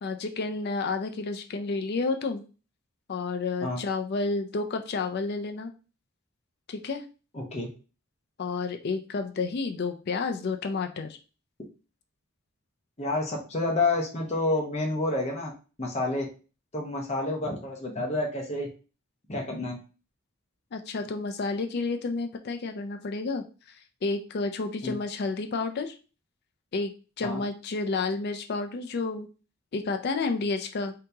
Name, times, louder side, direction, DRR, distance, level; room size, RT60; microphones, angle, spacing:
voice 1, 0.0-2.4 3.1-5.7 6.7-7.0 8.4-11.2 20.7-23.8 24.0-26.0 26.7-26.9 27.2-29.3 29.7-30.9, left 3 dB, 50° left, 6 dB, 0.4 m, -30 dB
voice 2, 7.3-7.7 13.0-15.5 15.8-16.2 16.7-18.7 19.3-19.8 24.8-24.9 27.2-27.4, left 2 dB, 30° left, 0 dB, 0.9 m, -29 dB
2.8 x 2.8 x 3.4 m, 0.34 s
head